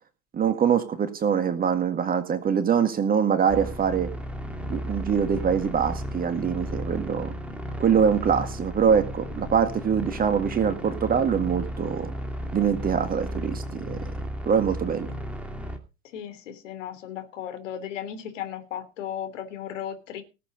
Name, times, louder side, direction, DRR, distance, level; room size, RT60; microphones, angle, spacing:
voice 1, 0.3-4.1 4.7-7.3 7.8-12.1 12.5-14.0 14.5-15.1, right 7 dB, 20° right, 10 dB, 1.8 m, -24 dB
sound 1, 3.5-15.8, equal, 5° right, 2.6 m, -34 dB
voice 2, 16.0-20.2, left 9 dB, 60° left, 9 dB, 3.4 m, -35 dB
18.5 x 7.8 x 5.1 m, 0.31 s
figure-of-eight pair, 90°, 43 cm